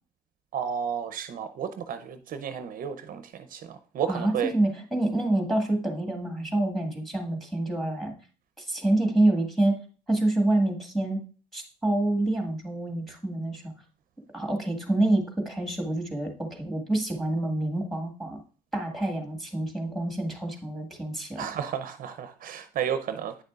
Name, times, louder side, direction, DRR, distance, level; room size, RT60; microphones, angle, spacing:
voice 1, 0.5-4.5 21.4-23.4, right 8 dB, 55° right, 10 dB, 0.6 m, -32 dB
voice 2, 4.1-8.1 8.6-9.8 10.1-11.2 11.5-13.6 14.3-18.4 18.7-21.4, right 1 dB, ahead, 3 dB, 1.7 m, -27 dB
9.1 x 6.5 x 2.4 m, 0.38 s
cardioid pair, 110°, 17 cm